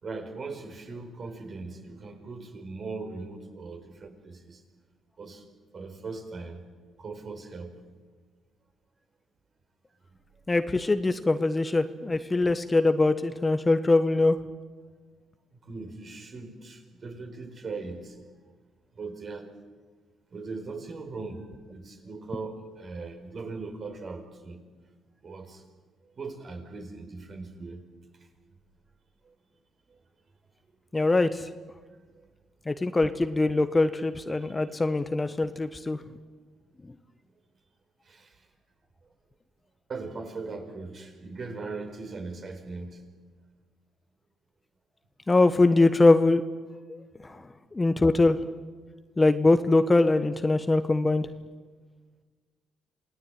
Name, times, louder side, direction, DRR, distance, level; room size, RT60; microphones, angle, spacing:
voice 1, 0.0-4.6 5.2-5.5 5.7-6.6 7.0-7.7 15.6-18.2 18.9-19.5 20.3-24.6 25.2-25.6 26.0-27.8 29.2-29.3 29.9-30.0 31.9-32.3 34.3-34.7 38.0-38.5 39.9-43.0, right 3 dB, 45° right, 5 dB, 4.7 m, -39 dB
voice 2, 10.5-14.4 30.9-31.5 32.7-36.0 45.3-46.4 46.9-48.4 49.2-51.3, left 2 dB, 20° left, 10 dB, 1.2 m, -23 dB
28.0 x 18.0 x 9.3 m, 1.4 s
cardioid pair, 90°, 0 cm